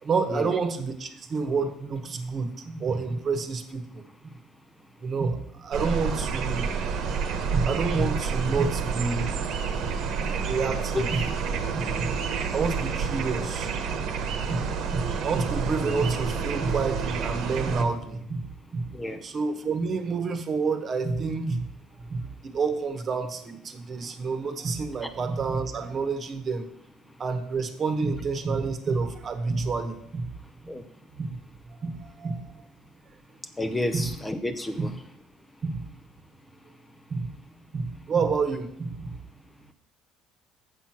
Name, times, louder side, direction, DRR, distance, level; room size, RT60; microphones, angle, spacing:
voice 1, 0.0-4.3 5.0-6.7 7.5-9.3 10.4-11.3 11.7-12.1 12.5-14.0 14.4-18.9 19.2-21.6 22.0-26.6 27.2-30.3 31.2-31.3 31.7-32.6 33.9-34.1 34.8-34.9 35.6-35.9 37.1-37.3 37.7-39.1, right 4 dB, 35° right, 8 dB, 1.1 m, -29 dB
sound 1, 5.7-17.8, right 6 dB, 60° right, 1.2 m, -29 dB
voice 2, 33.6-34.9, left 1 dB, 10° left, 8 dB, 0.6 m, -30 dB
7.6 x 7.0 x 5.9 m, 0.75 s
cardioid pair, 120°, 0 cm